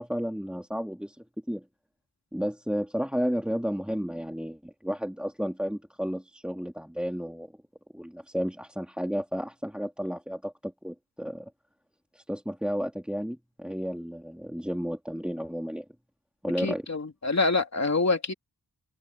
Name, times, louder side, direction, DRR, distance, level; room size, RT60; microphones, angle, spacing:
voice 1, 0.0-1.6 2.3-7.5 7.9-11.5 12.1-15.8 16.4-16.8, equal, 5° right, 2.8 m, -32 dB
voice 2, 16.6-18.3, left 3 dB, 45° left, 3.2 m, -26 dB
wide cardioid pair, 95°, 37 cm